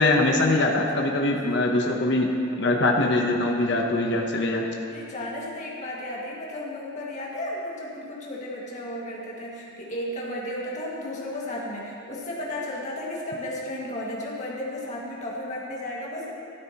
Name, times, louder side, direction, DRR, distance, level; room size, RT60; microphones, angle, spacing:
voice 1, 0.0-2.3 2.6-4.6, left 2 dB, 55° left, 1 dB, 0.8 m, -22 dB
voice 2, 1.2-1.7 4.9-16.3, left 1 dB, 35° left, -5 dB, 1.9 m, -34 dB
13.0 x 12.5 x 2.9 m, 2.6 s
head